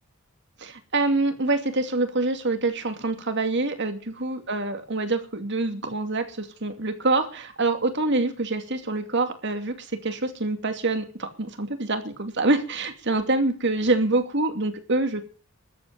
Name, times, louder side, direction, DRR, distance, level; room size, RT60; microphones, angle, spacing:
voice 1, 0.6-15.2, right 2 dB, 55° right, 7 dB, 2.6 m, -26 dB
13.5 x 8.8 x 9.2 m, 0.39 s
head